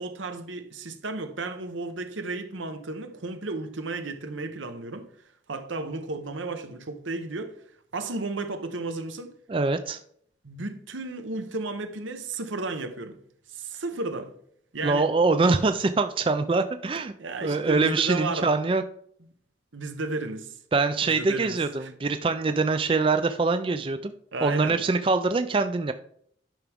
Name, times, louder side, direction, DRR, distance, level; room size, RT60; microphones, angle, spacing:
voice 1, 0.0-5.1 5.5-7.6 7.9-9.3 10.4-13.2 13.5-14.3 14.7-15.1 17.2-18.5 19.7-20.6 21.0-21.9 24.3-24.8, right 3 dB, 85° right, 1.1 m, -33 dB
voice 2, 9.5-10.0 14.8-17.1 17.4-18.8 20.7-24.1 24.4-25.9, right 3 dB, 25° right, 0.3 m, -24 dB
10.5 x 6.0 x 3.5 m
head